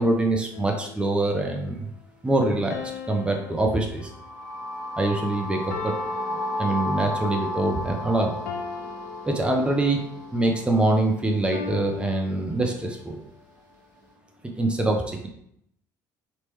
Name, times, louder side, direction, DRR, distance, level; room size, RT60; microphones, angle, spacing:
voice 1, 0.0-1.9 2.2-4.1 5.0-5.9 6.6-8.4 9.2-10.0 10.3-13.2 14.6-15.3, right 2 dB, 10° right, 2 dB, 0.7 m, -24 dB
sound 1, 0.5-1.4 2.7-4.6 5.7-7.3 8.5-10.1 11.5-13.1, left 5 dB, 80° left, 0.4 m, -39 dB
sound 2, 4.0-11.9, left 1 dB, 85° right, 0.8 m, -33 dB
3.2 x 2.9 x 3.0 m, 0.73 s
hypercardioid pair, 60°, 9 cm